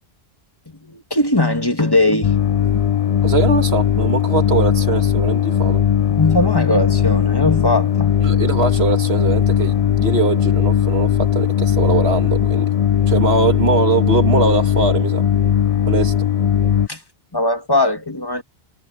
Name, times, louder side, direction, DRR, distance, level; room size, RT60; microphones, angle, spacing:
voice 1, 0.8-2.4 6.2-8.1 16.9-17.0 17.3-18.4, left 2 dB, 20° left, 2.0 m, -19 dB
sound 1, 2.2-16.9, left 9 dB, 45° left, 0.5 m, -18 dB
voice 2, 3.2-5.8 8.2-12.7 13.1-15.2 15.9-16.3, right 4 dB, 75° right, 2.1 m, -21 dB
omnidirectional pair, 1.1 m